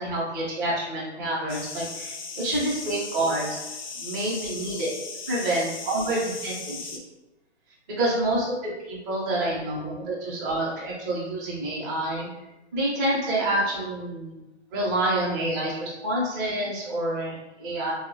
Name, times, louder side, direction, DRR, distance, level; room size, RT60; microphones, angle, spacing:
voice 1, 0.0-3.6 4.0-4.9 5.3-7.0 8.0-8.6 8.8-12.3 12.7-14.4 14.7-17.9, right 1 dB, 15° right, -5 dB, 0.5 m, -27 dB
sound 1, 1.5-7.0, left 4 dB, 45° left, 0.4 m, -37 dB
3.0 x 2.0 x 2.6 m, 1.0 s
figure-of-eight pair, 130°, 34 cm